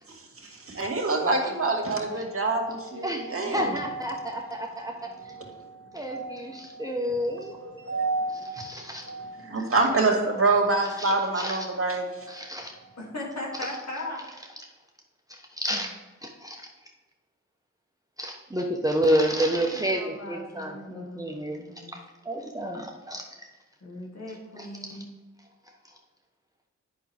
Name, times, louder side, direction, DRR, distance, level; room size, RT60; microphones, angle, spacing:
voice 1, 0.1-4.6 5.0-6.9 7.3-12.3, right 3 dB, 45° right, 1 dB, 2.2 m, -28 dB
voice 2, 3.0-5.3 5.9-7.6 8.6-9.1 11.0-11.6 12.3-12.7 13.6-13.8 15.3-16.7 18.2-21.6 22.2-23.3 24.6-25.0, equal, 10° right, 1 dB, 1.1 m, -30 dB
voice 3, 13.0-14.2 19.4-22.0 23.8-25.1, left 1 dB, 60° left, -3 dB, 2.7 m, -38 dB
8.5 x 6.2 x 3.5 m, 1.2 s
cardioid pair, 45°, 30 cm